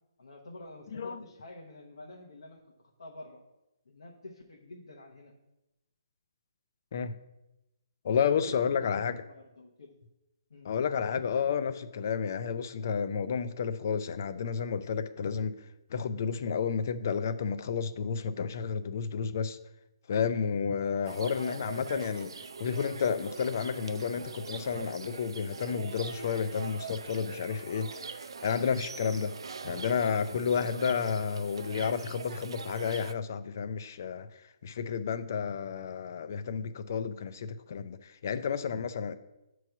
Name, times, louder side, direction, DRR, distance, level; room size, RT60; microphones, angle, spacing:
voice 1, 0.2-2.6 3.0-3.4 3.8-5.3 8.4-10.0 10.5-10.7, left 2 dB, 90° left, -1 dB, 1.0 m, -48 dB
voice 2, 8.0-9.2 10.6-15.6 15.9-19.6 20.1-22.3 22.6-29.4 29.6-34.3 34.6-39.1, left 6 dB, 35° left, 12 dB, 0.3 m, -31 dB
sound 1, 21.0-33.1, right 5 dB, 75° right, 0.4 m, -42 dB
7.8 x 3.1 x 5.8 m, 0.95 s
hypercardioid pair, 175°, 3 cm